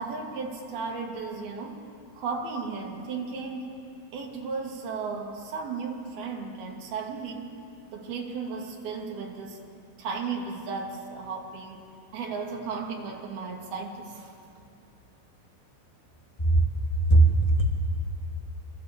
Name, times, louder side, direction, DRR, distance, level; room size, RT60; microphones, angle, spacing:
voice 1, 0.0-1.8 2.1-3.8 4.1-7.5 7.9-9.6 10.0-14.3, right 4 dB, 50° right, 0 dB, 4.1 m, -35 dB
voice 2, 17.1-17.6, right 2 dB, 30° left, -1 dB, 0.6 m, -18 dB
27.0 x 26.0 x 8.2 m, 2.5 s
omnidirectional pair, 6.0 m